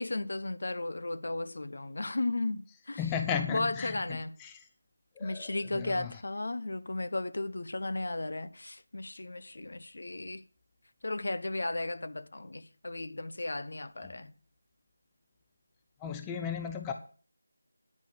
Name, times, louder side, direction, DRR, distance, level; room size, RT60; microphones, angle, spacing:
voice 1, 0.0-3.0 3.5-4.3 5.2-10.4 11.0-14.3, left 2 dB, 60° left, 1.1 m, -35 dB
voice 2, 3.0-4.7 5.2-6.1 14.0-14.1 16.0-16.9, left 7 dB, 10° left, 0.6 m, -35 dB
9.9 x 5.5 x 8.5 m
figure-of-eight pair, 170°, 0 cm